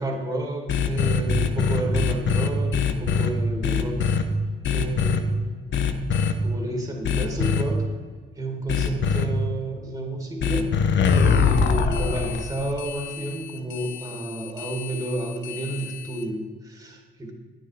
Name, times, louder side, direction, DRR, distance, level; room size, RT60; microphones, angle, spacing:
voice 1, 0.0-4.0 4.7-5.5 6.4-7.9 8.4-10.7 11.4-17.3, right 1 dB, 15° right, 2 dB, 2.3 m, -31 dB
sound 1, 0.7-3.3 3.6-4.2 4.6-5.2 5.7-6.3 7.0-7.6 8.7-9.2 10.4-16.2, left 6 dB, 65° left, 0.9 m, -23 dB
10.5 x 9.1 x 4.9 m, 1.5 s
cardioid pair, 90°, 20 cm